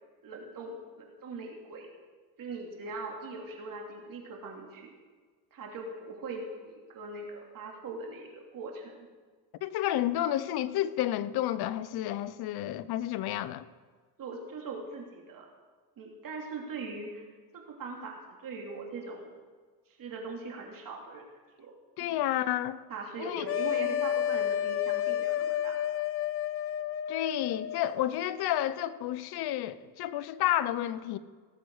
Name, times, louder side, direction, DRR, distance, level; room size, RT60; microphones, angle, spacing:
voice 1, 0.2-1.9 2.4-4.9 5.5-9.1 14.2-15.5 16.0-17.2 17.5-19.3 20.0-21.2 21.6-21.7 22.0-22.2 22.9-25.8, right 3 dB, 50° right, 3.0 m, -41 dB
voice 2, 9.6-13.7 22.0-22.8 23.2-23.5 27.1-31.2, left 12 dB, 60° left, 0.8 m, -30 dB
sound 1, 23.5-27.9, left 11 dB, 35° left, 0.4 m, -30 dB
18.0 x 7.8 x 4.8 m
cardioid pair, 100°, 42 cm